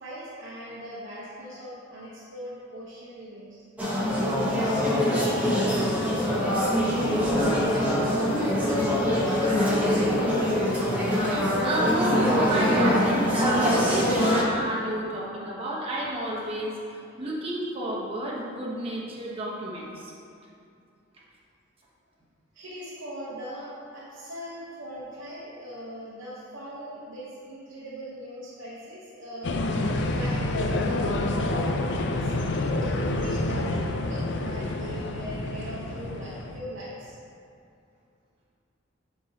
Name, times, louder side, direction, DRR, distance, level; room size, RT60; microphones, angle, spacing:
voice 1, 0.0-3.5 3.9-8.2 8.6-10.7 22.5-29.7 30.1-33.7 34.0-37.2, equal, 75° right, -8 dB, 1.1 m, -40 dB
sound 1, 3.8-14.4, equal, 10° right, 1.1 m, -24 dB
voice 2, 11.6-16.8 17.2-20.1, right 1 dB, 30° right, -5 dB, 1.1 m, -30 dB
sound 2, 29.4-36.6, left 2 dB, 60° left, 0.5 m, -28 dB
10.5 x 4.5 x 2.9 m, 2.5 s
head